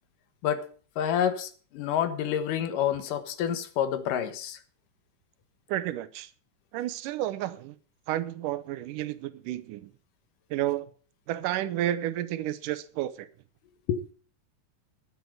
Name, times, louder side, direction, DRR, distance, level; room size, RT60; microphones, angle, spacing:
voice 1, 1.0-4.6 13.9-14.0, left 9 dB, 85° left, 2.8 m, -28 dB
voice 2, 5.7-6.3 6.7-7.7 8.1-9.9 10.5-10.9 11.3-13.3, right 13 dB, 80° right, 2.3 m, -31 dB
11.0 x 9.4 x 6.4 m
omnidirectional pair, 3.7 m